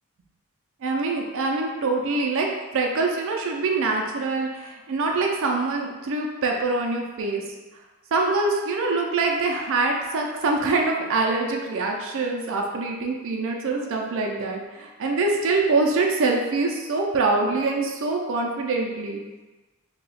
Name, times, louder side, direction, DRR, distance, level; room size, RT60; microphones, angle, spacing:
voice 1, 0.8-7.4 8.1-19.2, right 3 dB, 60° right, 1 dB, 0.5 m, -24 dB
2.8 x 2.3 x 4.1 m, 1.2 s
head